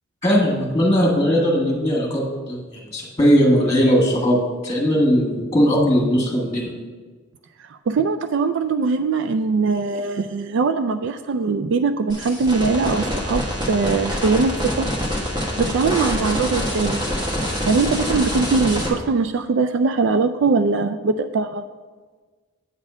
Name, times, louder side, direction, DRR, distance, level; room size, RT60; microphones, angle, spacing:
voice 1, 0.2-4.4 4.6-6.7, equal, 15° left, -3 dB, 1.6 m, -19 dB
voice 2, 7.7-14.9 15.6-17.0 17.5-21.6, right 4 dB, 65° right, 9 dB, 0.3 m, -21 dB
sound 1, 12.1-18.9, equal, 25° right, 1.3 m, -25 dB
8.6 x 4.1 x 6.1 m, 1.4 s
head